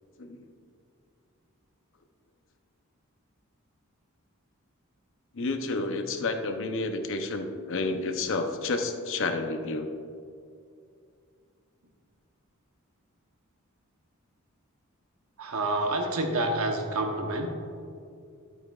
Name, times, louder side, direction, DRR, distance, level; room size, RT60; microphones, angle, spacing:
voice 1, 5.3-9.9, left 3 dB, 65° left, 6 dB, 0.7 m, -30 dB
voice 2, 15.4-17.5, right 2 dB, 80° right, 3 dB, 1.0 m, -28 dB
12.0 x 8.4 x 2.4 m, 2.4 s
head